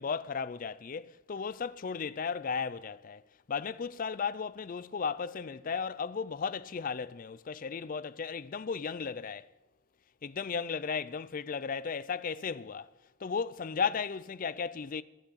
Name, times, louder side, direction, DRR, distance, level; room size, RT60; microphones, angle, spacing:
voice 1, 0.0-3.2 3.5-9.5 10.2-12.9 13.2-15.0, left 6 dB, 35° left, 0.4 m, -35 dB
15.5 x 6.1 x 9.8 m
head